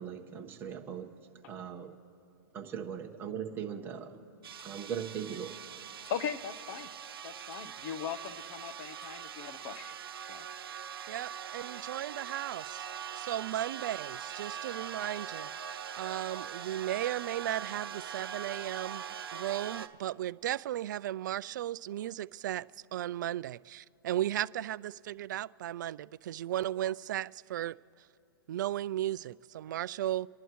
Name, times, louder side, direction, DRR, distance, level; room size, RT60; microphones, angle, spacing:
voice 1, 0.0-2.0 2.5-4.2 4.6-5.6, right 8 dB, 15° right, 2 dB, 1.3 m, -40 dB
sound 1, 4.4-19.9, right 8 dB, 80° right, 0.9 m, -42 dB
Clock, 4.6-4.7 5.3-5.4 6.0-6.2 6.8-6.9 7.5-7.6 8.2-8.4 9.0-9.2 9.7-9.8, left 3 dB, 85° left, 1.8 m, -59 dB
voice 2, 6.1-6.9 7.5-10.5, left 8 dB, 40° left, 12 dB, 0.9 m, -39 dB
voice 3, 11.1-12.8 13.2-15.5 16.0-19.0 19.3-22.7 22.9-27.8 28.5-30.3, right 13 dB, 55° right, 19 dB, 0.4 m, -35 dB
27.5 x 11.5 x 3.1 m, 2.9 s
hypercardioid pair, 145°, 12 cm